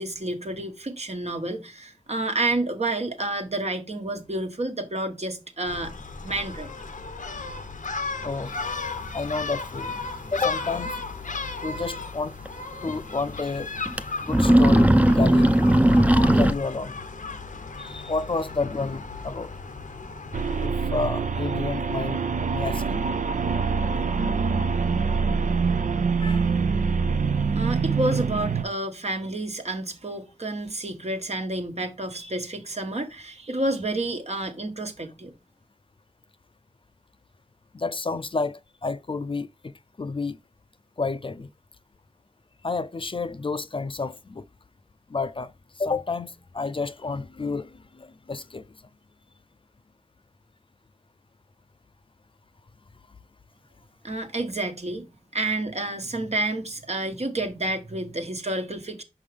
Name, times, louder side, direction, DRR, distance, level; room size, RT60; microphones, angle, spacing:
voice 1, 0.0-5.9 6.2-6.7 27.5-35.3 54.0-55.0 55.3-59.0, right 2 dB, 55° right, 1.2 m, -29 dB
Gull seagull, 5.7-20.7, left 4 dB, 90° left, 0.8 m, -35 dB
voice 2, 8.2-8.6 9.1-11.0 11.6-12.3 12.8-13.7 14.2-15.6 16.2-17.0 17.8-19.5 20.6-22.2 22.5-23.0 26.2-26.5 37.7-39.7 40.0-40.4 41.0-41.5 42.6-44.4 45.1-45.5 45.8-48.6, left 3 dB, 40° left, 0.4 m, -30 dB
sound 1, 10.4-10.5 10.9-11.0 12.5-12.6 12.9-13.0 13.9-14.0 14.3-16.5, right 1 dB, 10° right, 0.5 m, -17 dB
sound 2, 20.3-28.6, right 5 dB, 85° right, 0.5 m, -25 dB
5.8 x 5.4 x 3.3 m
wide cardioid pair, 55°, 13 cm